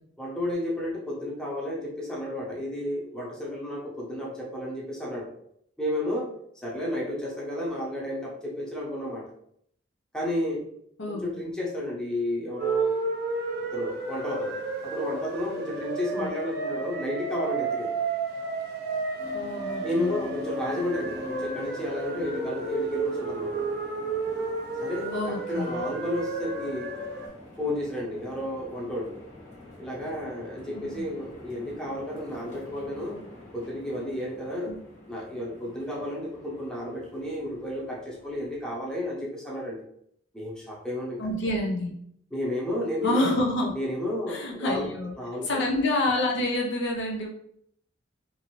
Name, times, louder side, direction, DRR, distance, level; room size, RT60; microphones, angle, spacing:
voice 1, 0.2-5.3 5.8-6.3 6.6-9.2 10.1-10.6 11.1-12.9 13.7-17.9 19.8-23.6 24.8-26.9 27.6-29.1 29.8-33.2 33.5-34.7 35.1-39.8 40.3-41.2 42.3-43.2 43.7-44.9 45.2-45.6, left 1 dB, 5° left, -5 dB, 0.7 m, -32 dB
sound 1, 12.6-27.3, right 3 dB, 55° right, 0.5 m, -32 dB
sound 2, 19.2-38.8, left 2 dB, 35° left, 1.1 m, -46 dB
voice 2, 19.3-20.1 25.1-25.8 30.7-31.0 34.7-34.8 41.2-41.9 43.0-43.7 44.3-45.1 45.4-47.3, left 1 dB, 65° left, 0 dB, 0.6 m, -28 dB
2.7 x 2.5 x 3.0 m, 0.69 s
head